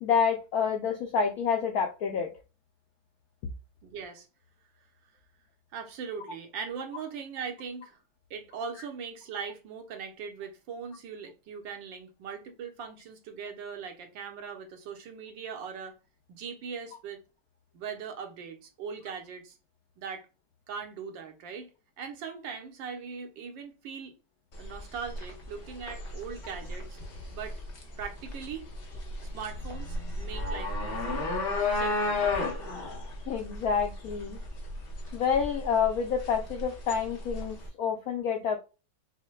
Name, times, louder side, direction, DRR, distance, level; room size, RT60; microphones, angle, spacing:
voice 1, 0.0-2.3 33.3-34.4 35.1-38.6, left 6 dB, 90° left, 0.7 m, -28 dB
voice 2, 3.8-4.3 5.7-8.0 8.3-16.0 16.3-17.2 17.7-19.6 20.0-20.3 20.7-21.7 22.0-24.1 24.6-27.0 27.3-27.6 28.0-28.7 29.2-31.3 31.7-32.2, right 6 dB, 70° right, 1.4 m, -40 dB
sound 1, 24.5-37.7, left 2 dB, 45° left, 0.7 m, -34 dB
6.2 x 2.1 x 2.2 m
omnidirectional pair, 2.2 m